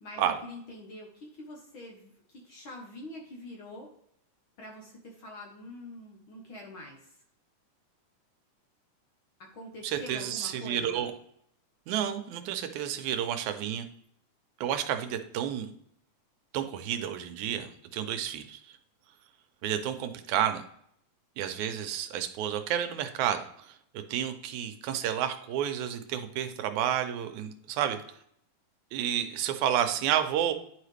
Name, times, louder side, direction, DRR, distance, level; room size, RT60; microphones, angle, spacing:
voice 1, 0.0-3.9 4.6-7.1 9.4-11.1, left 1 dB, 55° left, 0 dB, 1.5 m, -45 dB
voice 2, 9.8-11.1 11.9-13.9 14.6-15.7 16.5-18.6 19.6-20.6 21.4-28.0 28.9-30.5, right 10 dB, 85° right, 8 dB, 2.0 m, -30 dB
10.5 x 4.8 x 3.3 m, 0.69 s
omnidirectional pair, 3.4 m